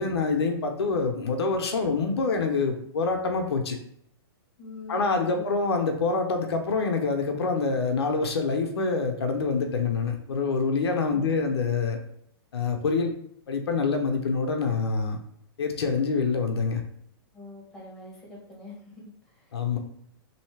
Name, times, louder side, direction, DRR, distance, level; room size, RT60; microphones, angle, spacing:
voice 1, 0.0-3.8 4.9-12.0 12.5-13.1 13.5-15.2 15.6-16.8 19.5-19.8, left 4 dB, 85° left, 4 dB, 0.6 m, -26 dB
voice 2, 4.6-5.4 11.1-11.5 17.3-19.6, left 2 dB, ahead, -5 dB, 1.4 m, -45 dB
3.1 x 2.7 x 3.2 m, 0.70 s
hypercardioid pair, 140°, 13 cm